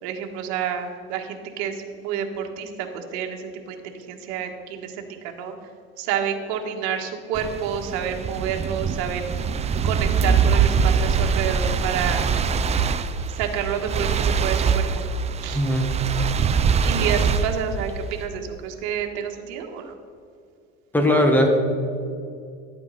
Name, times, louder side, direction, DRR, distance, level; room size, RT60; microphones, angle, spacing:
voice 1, 0.0-5.5 6.0-9.4 9.8-12.2 13.3-15.0 15.4-15.6 16.8-19.9, right 8 dB, 70° right, 3 dB, 1.6 m, -29 dB
sound 1, 7.3-18.2, right 6 dB, 20° right, 0.5 m, -23 dB
voice 2, 15.5-16.0 20.9-21.5, equal, 5° left, 3 dB, 1.7 m, -19 dB
12.0 x 8.8 x 4.2 m, 2.4 s
supercardioid pair, 120°, 30 cm